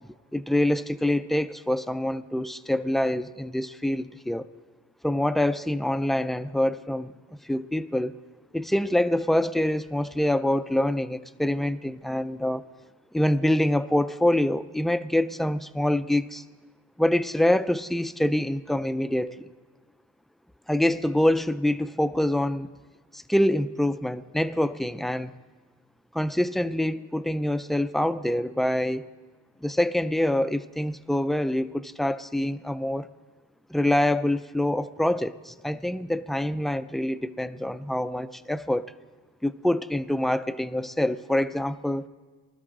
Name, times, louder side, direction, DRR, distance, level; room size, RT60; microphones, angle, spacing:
voice 1, 0.3-4.5 5.0-7.1 7.4-8.1 8.5-12.6 13.1-16.4 17.0-19.5 20.7-22.7 23.1-25.3 26.1-29.1 29.6-33.1 33.7-38.9 39.4-42.1, left 1 dB, ahead, 0.3 m, -25 dB
20.0 x 12.5 x 3.7 m
cardioid pair, 95°, 32 cm